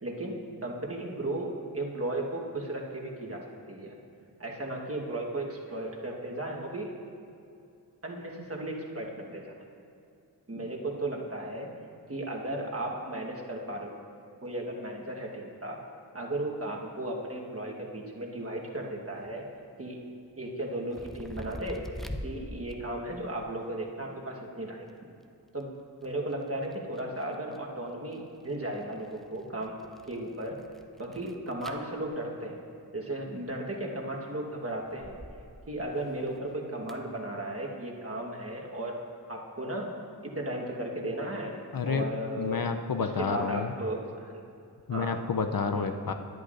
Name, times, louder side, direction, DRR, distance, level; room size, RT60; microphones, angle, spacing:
voice 1, 0.0-4.0 4.4-6.9 8.0-9.5 10.5-11.7 12.1-13.9 14.4-15.8 16.1-19.4 19.8-20.0 20.4-21.8 22.2-24.9 25.5-25.7 26.0-29.8 30.1-30.6 31.0-32.6 32.9-35.2 35.7-39.0 39.3-39.9 40.2-41.5 41.9-42.7 43.0-44.4 44.9-45.2 45.7-45.9, right 1 dB, 35° right, -1 dB, 1.3 m, -35 dB
sound 1, 18.9-19.0 19.2-19.6 20.5-22.3 22.6-23.4 24.9-25.0 25.2-25.6 26.0-27.6 28.1-32.2 33.5-34.0 34.6-35.6 35.9-37.0, equal, ahead, 0.5 m, -45 dB
voice 2, 41.7-43.7 44.9-46.1, left 5 dB, 55° left, 6 dB, 0.5 m, -30 dB
10.5 x 10.0 x 2.5 m, 2.6 s
wide cardioid pair, 40°, 42 cm